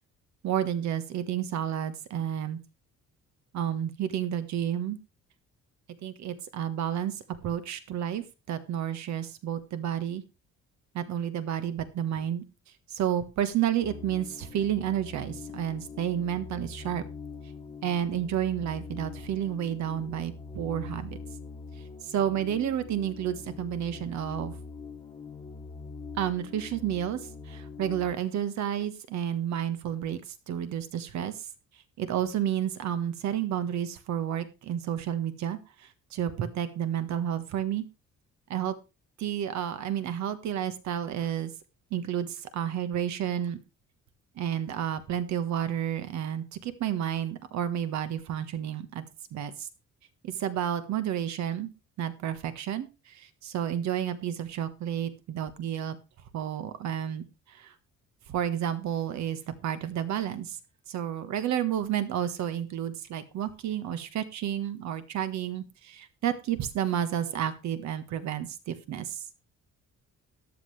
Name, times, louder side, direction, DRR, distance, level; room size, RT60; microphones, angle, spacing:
voice 1, 0.4-2.6 3.5-5.0 6.0-7.2 7.4-10.2 10.9-12.4 12.9-17.0 17.8-21.2 22.0-24.5 26.2-27.2 27.5-30.2 30.5-31.3 32.0-35.6 36.1-37.8 38.5-38.7 39.2-41.5 41.9-43.6 44.4-49.0 49.3-49.7 50.2-51.7 52.0-56.0 56.3-57.2 57.6-57.7 58.3-60.6 60.9-69.2, right 10 dB, 65° right, 11 dB, 1.5 m, -31 dB
sound 1, 13.8-28.1, left 4 dB, 15° left, 1.3 m, -43 dB
13.5 x 11.5 x 3.3 m, 0.28 s
cardioid pair, 180°, 30 cm